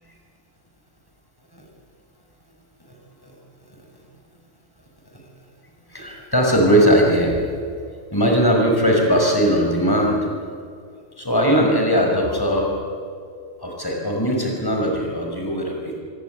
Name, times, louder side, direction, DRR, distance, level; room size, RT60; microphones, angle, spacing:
voice 1, 5.9-7.4 8.1-10.2 11.2-12.7 13.6-16.0, equal, 15° left, 0 dB, 5.9 m, -19 dB
27.0 x 23.0 x 9.4 m, 2.2 s
omnidirectional pair, 1.3 m